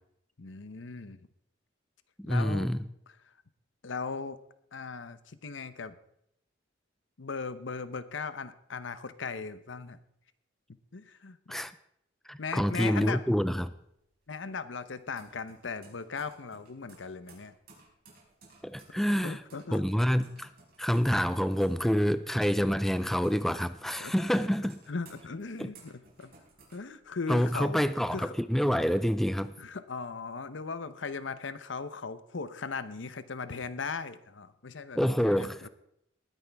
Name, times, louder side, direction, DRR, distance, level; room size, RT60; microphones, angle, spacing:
voice 1, 0.4-1.2 2.3-2.7 3.8-4.4 4.7-6.0 7.2-10.0 10.9-11.4 12.4-13.2 14.3-17.5 19.2-19.8 24.0-24.1 24.9-26.3 26.7-27.8 28.1-28.3 29.6-35.7, left 4 dB, 80° left, 13 dB, 0.8 m, -38 dB
voice 2, 2.3-2.8 11.5-11.7 12.3-13.7 18.6-19.4 19.7-20.5 20.8-24.8 25.6-25.7 27.3-29.5 34.9-35.7, equal, ahead, 13 dB, 0.4 m, -27 dB
sound 1, 13.7-27.5 27.9-28.7, right 3 dB, 50° right, 5.1 m, -58 dB
19.5 x 9.9 x 3.5 m, 0.75 s
head